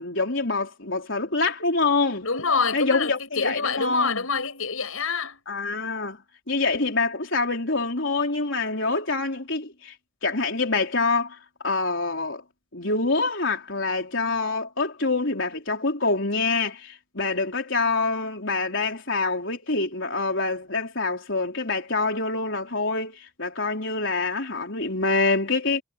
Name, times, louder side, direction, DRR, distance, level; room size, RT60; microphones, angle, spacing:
voice 1, 0.0-2.3 2.7-4.2 5.5-6.2 6.5-10.0 10.2-12.4 12.7-25.8, left 3 dB, 65° left, 4.4 m, -26 dB
voice 2, 2.2-5.4, left 5 dB, 90° left, 7.9 m, -26 dB
head